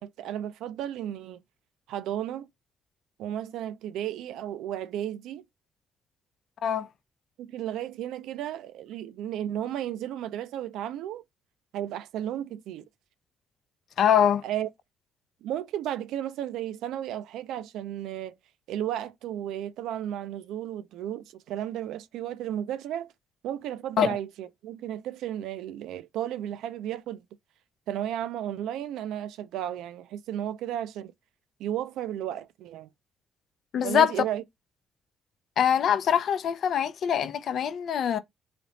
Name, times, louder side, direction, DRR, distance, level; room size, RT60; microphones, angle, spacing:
voice 1, 0.0-1.4 1.9-2.5 3.2-5.4 7.4-11.2 11.7-12.8 14.4-14.7 15.4-18.3 18.7-23.1 23.4-27.2 27.9-31.1 31.6-32.9 33.8-34.4, right 11 dB, 90° right, 0.4 m, -34 dB
voice 2, 14.0-14.4 24.0-24.2 33.7-34.1 35.6-38.2, left 8 dB, 65° left, 0.5 m, -23 dB
3.3 x 2.9 x 3.9 m
cardioid pair, 90°, 0 cm